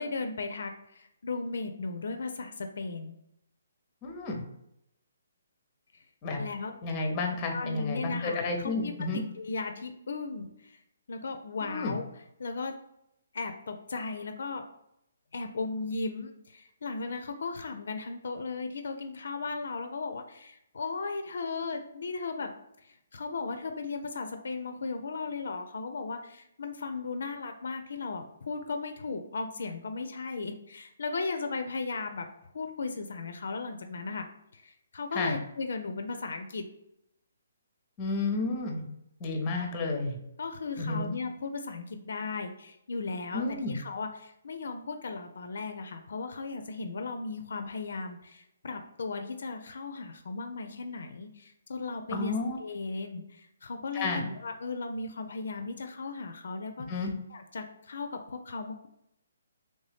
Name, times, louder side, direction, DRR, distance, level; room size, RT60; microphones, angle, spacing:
voice 1, 0.0-3.1 6.4-6.8 7.5-10.8 11.1-12.0 12.4-12.7 13.3-14.6 15.3-22.5 22.8-34.3 34.5-36.6 40.4-58.9, left 4 dB, 70° left, 7 dB, 0.4 m, -36 dB
voice 2, 4.0-4.4 6.2-6.4 6.8-9.2 11.6-12.0 35.2-35.4 38.0-38.9 39.2-40.2 40.8-41.1 43.3-43.8 52.1-52.6 53.9-54.2 56.9-57.1, left 3 dB, 25° left, 3 dB, 0.6 m, -31 dB
3.2 x 2.7 x 3.3 m, 0.81 s
hypercardioid pair, 155°, 0 cm